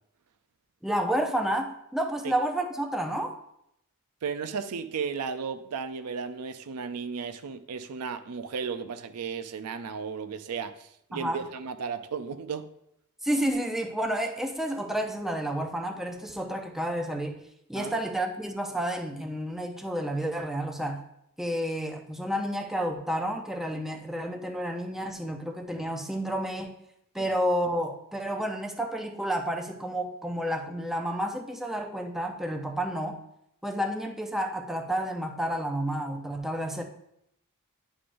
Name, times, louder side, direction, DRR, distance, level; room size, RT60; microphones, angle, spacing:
voice 1, 0.8-3.4 11.1-11.4 13.2-21.0 21.4-26.8 27.1-33.2 33.6-36.8, right 1 dB, ahead, 0.6 m, -30 dB
voice 2, 4.2-12.7 17.8-18.0 27.2-27.3, right 5 dB, 85° right, 0.5 m, -34 dB
10.0 x 4.9 x 2.6 m
head